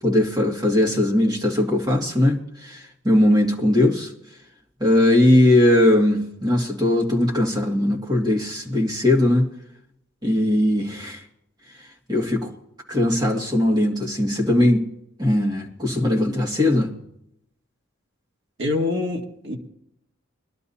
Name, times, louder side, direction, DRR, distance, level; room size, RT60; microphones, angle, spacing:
voice 1, 0.0-4.1 4.8-9.5 10.2-11.2 12.1-12.5 12.9-14.8 15.2-16.9, left 1 dB, 20° right, -1 dB, 2.0 m, -19 dB
voice 2, 18.6-19.6, left 2 dB, 55° right, 1 dB, 1.7 m, -25 dB
23.0 x 12.0 x 2.8 m, 0.77 s
head